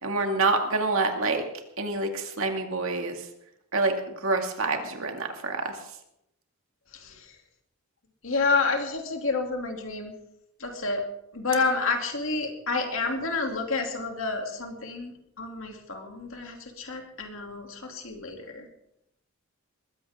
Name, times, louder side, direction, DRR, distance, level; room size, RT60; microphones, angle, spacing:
voice 1, 0.0-1.4 1.8-3.2 3.7-5.8, right 3 dB, 65° right, 4 dB, 2.3 m, -27 dB
voice 2, 6.9-7.3 8.2-10.1 10.6-11.1 11.3-18.7, left 3 dB, 60° left, 2 dB, 2.8 m, -29 dB
21.0 x 15.0 x 3.7 m, 0.79 s
head